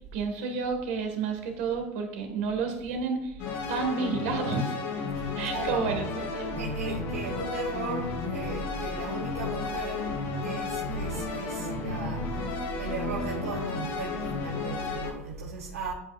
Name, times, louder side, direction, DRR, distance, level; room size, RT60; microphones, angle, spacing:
voice 1, 0.1-3.4 3.7-4.7 5.4-6.5 6.8-7.0, right 5 dB, 65° right, 1.8 m, -30 dB
sound 1, 3.4-15.1, left 4 dB, 60° left, 2.2 m, -33 dB
voice 2, 5.1-5.9 6.5-15.9, right 4 dB, 90° right, 1.0 m, -36 dB
10.0 x 5.1 x 2.5 m
hypercardioid pair, 95°, 8 cm